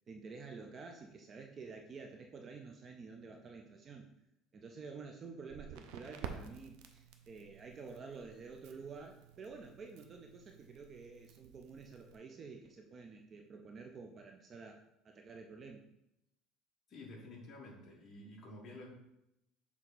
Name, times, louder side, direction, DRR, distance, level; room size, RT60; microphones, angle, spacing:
voice 1, 0.1-4.1 4.5-15.8, right 4 dB, 25° right, 3 dB, 0.4 m, -50 dB
Crackle, 5.5-12.2, right 7 dB, 80° right, 0.6 m, -52 dB
voice 2, 16.9-18.9, left 2 dB, 30° left, -2 dB, 1.5 m, -51 dB
6.7 x 3.5 x 4.1 m, 0.85 s
cardioid pair, 165°, 0 cm